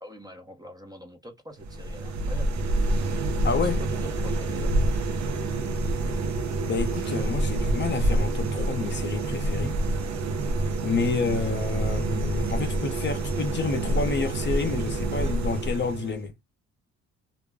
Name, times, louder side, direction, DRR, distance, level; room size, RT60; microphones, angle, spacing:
voice 1, 0.0-2.5 3.6-4.8, equal, 15° right, 0.7 m, -44 dB
sound 1, 1.6-16.3, right 2 dB, 65° right, 0.7 m, -27 dB
voice 2, 3.4-3.8 6.7-9.8 10.8-16.3, left 4 dB, 35° left, 0.6 m, -29 dB
2.4 x 2.0 x 3.4 m
cardioid pair, 90°, 30 cm